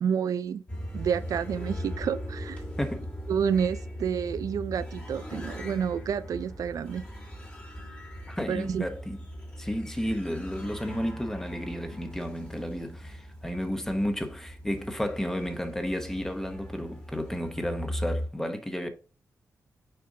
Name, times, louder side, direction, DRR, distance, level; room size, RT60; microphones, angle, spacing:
voice 1, 0.0-0.6 0.9-2.6 3.3-7.0 8.5-8.9, right 7 dB, 75° right, 0.4 m, -29 dB
sound 1, 0.7-18.3, equal, 25° left, 1.9 m, -39 dB
voice 2, 2.8-3.1 8.3-9.2 9.6-18.9, equal, 5° left, 0.9 m, -32 dB
6.7 x 5.2 x 2.7 m
wide cardioid pair, 145°, 6 cm